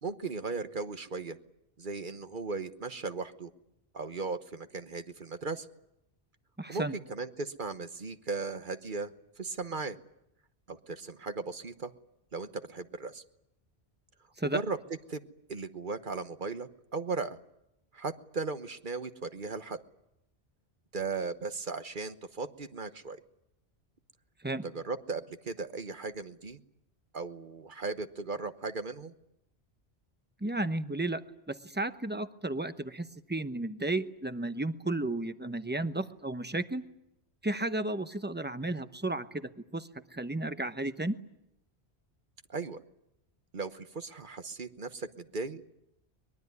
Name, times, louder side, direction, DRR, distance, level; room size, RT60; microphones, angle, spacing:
voice 1, 0.0-1.4 1.8-3.5 3.9-5.7 6.7-9.1 9.4-10.0 10.7-11.9 12.3-13.2 14.5-14.8 15.1-15.2 15.5-17.4 17.9-19.8 20.9-23.2 24.6-26.6 27.1-29.1 42.5-42.8 43.5-45.6, right 4 dB, 50° right, 10 dB, 1.2 m, -37 dB
voice 2, 6.6-6.9 14.4-14.6 24.4-24.6 30.4-31.2 31.5-36.8 37.4-41.2, right 2 dB, 10° right, 10 dB, 0.9 m, -33 dB
23.0 x 22.0 x 9.6 m, 0.83 s
omnidirectional pair, 1.1 m